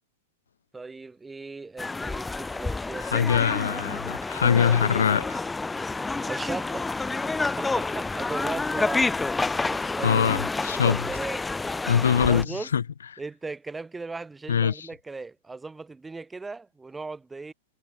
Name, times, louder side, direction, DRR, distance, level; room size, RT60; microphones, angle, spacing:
voice 1, 0.7-3.4 6.3-7.2 7.6-9.0 9.6-10.6 10.8-11.4 12.2-12.7 13.2-17.5, right 3 dB, 10° right, 5.2 m, -37 dB
sound 1, 1.8-12.4, left 3 dB, 10° left, 2.9 m, -29 dB
voice 2, 3.0-5.4 10.0-11.0 11.9-12.8 14.5-14.9, left 7 dB, 80° left, 0.5 m, -23 dB
hypercardioid pair, 105°, 0 cm